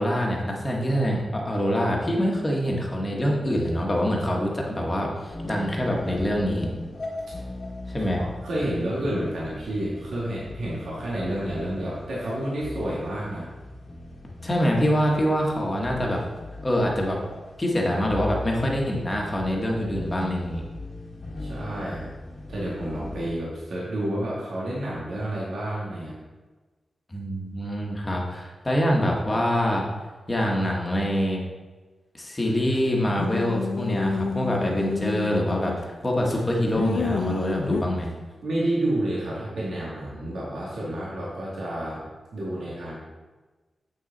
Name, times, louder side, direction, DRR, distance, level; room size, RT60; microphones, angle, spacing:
voice 1, 0.0-6.7 7.9-8.2 14.4-16.2 16.6-17.2 17.6-20.6 27.1-29.8 30.3-31.4 32.1-38.1, equal, 20° left, -1 dB, 1.4 m, -25 dB
sound 1, 5.3-23.3, left 2 dB, 50° left, 1.3 m, -39 dB
voice 2, 8.0-13.5 21.4-22.1 22.5-26.2 38.4-42.0 42.3-43.0, right 1 dB, 85° right, -6 dB, 2.0 m, -30 dB
sound 2, 33.1-35.9 36.3-37.8, left 5 dB, 90° left, 0.6 m, -29 dB
7.9 x 6.2 x 4.0 m, 1.3 s
wide cardioid pair, 155°, 0 cm